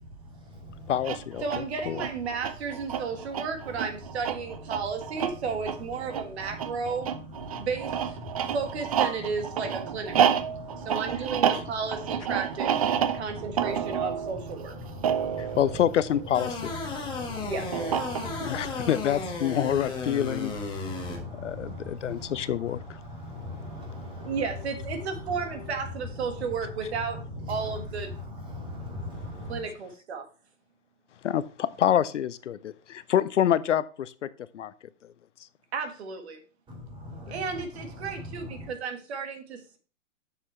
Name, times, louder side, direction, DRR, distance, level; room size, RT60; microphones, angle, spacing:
voice 1, 0.9-1.4 1.9-2.0 15.4-16.7 18.4-20.5 21.4-23.0 31.2-34.3 34.5-34.7, left 10 dB, 65° left, 0.6 m, -27 dB
sound 1, 0.9-16.7 17.7-18.6, right 9 dB, 30° right, 0.4 m, -30 dB
voice 2, 1.4-7.1 7.6-8.2 8.5-10.4 10.8-12.9 13.1-14.7 17.4-17.9 24.2-27.2 27.5-28.1 29.5-30.2 35.7-36.4 37.3-39.8, right 5 dB, 55° right, 1.7 m, -33 dB
voice 3, 10.5-10.9 13.1-13.2 14.8-15.6 16.9-17.5 18.1-18.9 20.8-22.3 23.0-24.3 28.5-29.6 36.7-37.4 38.6-38.7, left 1 dB, 15° right, 2.2 m, -40 dB
sound 2, 16.3-21.2, left 4 dB, 10° left, 1.5 m, -34 dB
7.3 x 6.8 x 3.1 m
hypercardioid pair, 135°, 39 cm